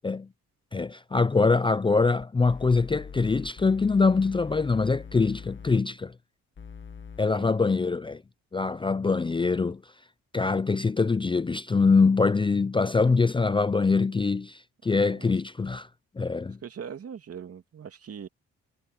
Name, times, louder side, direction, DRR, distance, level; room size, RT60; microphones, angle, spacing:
voice 1, 0.7-6.1 7.2-8.2 8.5-9.8 10.3-15.9 16.2-16.6, left 4 dB, 15° left, 0.5 m, -24 dB
sound 1, 2.2-5.8 6.6-7.2, left 6 dB, 40° left, 2.0 m, -43 dB
voice 2, 14.9-15.3 16.6-18.3, right 7 dB, 50° right, 2.7 m, -41 dB
cardioid pair, 90°, 30 cm